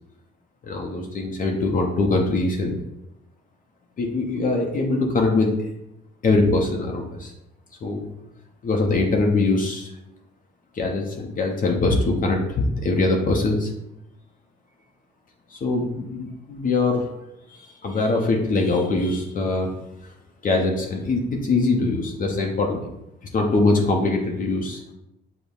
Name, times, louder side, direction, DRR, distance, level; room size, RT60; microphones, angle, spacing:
voice 1, 0.6-2.8 4.0-5.7 6.2-7.3 7.8-8.1 8.6-9.9 10.7-13.7 15.5-17.1 17.5-19.7 20.4-22.9 23.3-24.8, left 3 dB, 45° left, 1 dB, 0.5 m, -22 dB
5.2 x 2.0 x 2.3 m, 0.86 s
cardioid pair, 90°, 20 cm